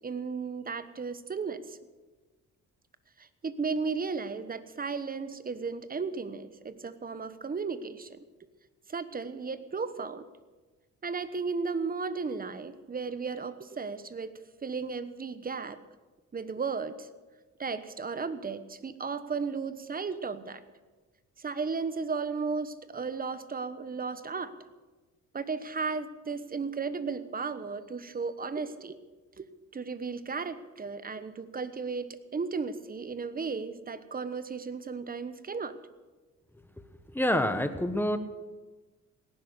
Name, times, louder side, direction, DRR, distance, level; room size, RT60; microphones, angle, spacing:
voice 1, 0.0-1.8 3.2-8.2 8.9-10.2 11.0-15.8 16.3-17.1 17.6-20.6 21.4-24.5 25.3-29.0 29.4-35.8, right 4 dB, 30° right, 13 dB, 1.1 m, -35 dB
voice 2, 37.1-38.2, left 1 dB, 5° left, 9 dB, 1.3 m, -27 dB
18.0 x 10.5 x 6.7 m, 1.3 s
cardioid pair, 90°, 30 cm